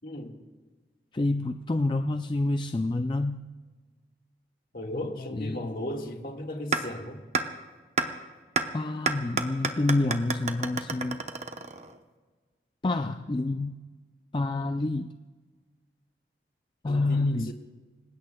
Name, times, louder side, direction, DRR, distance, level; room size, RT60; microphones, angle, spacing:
voice 1, 0.0-0.4 4.7-7.2 16.9-17.5, left 1 dB, 55° left, 1.8 m, -36 dB
voice 2, 1.1-3.4 5.3-5.7 8.7-11.2 12.8-13.8 14.3-15.1 16.8-17.5, left 2 dB, 25° left, 0.4 m, -28 dB
sound 1, 6.7-6.8 7.3-7.4 8.0-8.1 8.6-8.7 9.1-12.0, right 4 dB, 40° right, 0.9 m, -28 dB
26.0 x 19.5 x 2.3 m
head